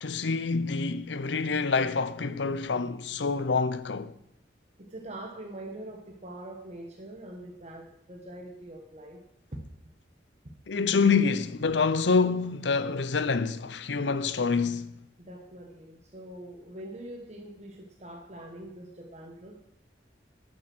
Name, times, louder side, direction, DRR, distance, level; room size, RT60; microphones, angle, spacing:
voice 1, 0.0-4.1 10.7-14.9, left 4 dB, 90° left, 0.7 m, -26 dB
voice 2, 4.8-9.2 9.5-9.6 15.2-19.6, right 1 dB, 40° right, 1.5 m, -43 dB
12.5 x 9.0 x 6.2 m
head